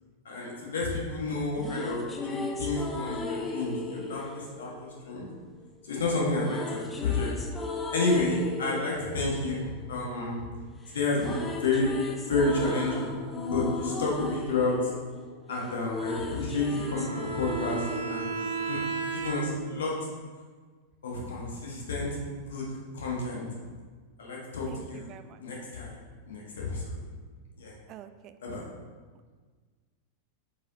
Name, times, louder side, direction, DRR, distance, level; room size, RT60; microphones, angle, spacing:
voice 1, 0.2-5.3 5.8-7.3 7.9-10.4 10.9-11.9 12.3-13.2 13.5-14.7 15.5-18.3 18.6-18.8 19.1-19.9 21.0-23.5 24.2-25.1 25.4-26.0 26.3-27.0 27.6-27.7 28.4-28.6, left 3 dB, 65° left, -3 dB, 1.5 m, -30 dB
sound 1, 1.3-5.5 6.3-10.6 10.9-19.4, left 3 dB, 15° left, 0.7 m, -36 dB
Bowed string instrument, 16.7-19.7, right 5 dB, 55° right, 1.0 m, -34 dB
voice 2, 24.7-25.4 27.9-28.4, right 11 dB, 35° right, 11 dB, 0.3 m, -47 dB
7.4 x 4.7 x 2.8 m, 1.5 s
figure-of-eight pair, 90°, 0 cm